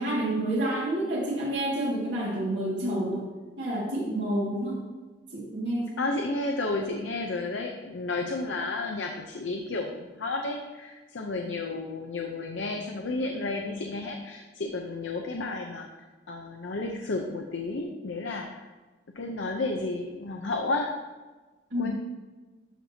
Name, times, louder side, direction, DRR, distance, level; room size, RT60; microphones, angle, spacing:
voice 1, 0.0-3.2 3.6-4.8 5.3-6.0 21.7-21.9, right 1 dB, 65° right, -5 dB, 2.0 m, -29 dB
voice 2, 6.0-15.9 16.3-18.7 19.2-21.0 21.8-21.9, left 2 dB, 75° left, 2 dB, 0.7 m, -32 dB
12.0 x 5.9 x 2.8 m, 1.3 s
head